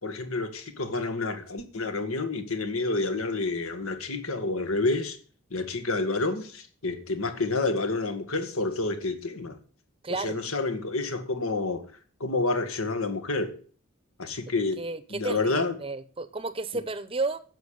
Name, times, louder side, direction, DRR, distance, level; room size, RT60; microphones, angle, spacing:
voice 1, 0.0-5.2 5.5-9.6 10.1-11.9 12.2-13.5 14.2-14.9 15.1-15.8, left 3 dB, 85° left, 1.9 m, -29 dB
voice 2, 10.0-10.4 14.8-17.4, right 3 dB, 25° right, 0.7 m, -32 dB
11.0 x 7.1 x 6.6 m
head